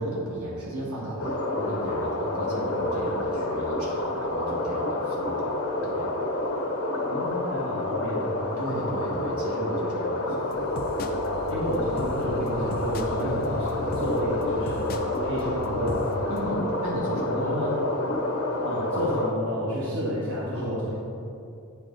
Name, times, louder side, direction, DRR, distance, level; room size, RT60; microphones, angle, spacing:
voice 1, 0.0-5.5 5.8-6.1 8.6-10.5 13.2-13.5 16.3-17.8 20.5-20.9, right 1 dB, 80° right, -5 dB, 1.7 m, -34 dB
sound 1, 1.2-19.3, left 1 dB, 75° left, 1.0 m, -29 dB
voice 2, 7.1-8.4 11.5-16.1 17.4-17.7 18.6-20.9, equal, 60° right, -7 dB, 1.2 m, -30 dB
sound 2, 10.3-16.5, left 1 dB, 40° left, 0.4 m, -38 dB
9.0 x 4.4 x 3.8 m, 2.5 s
head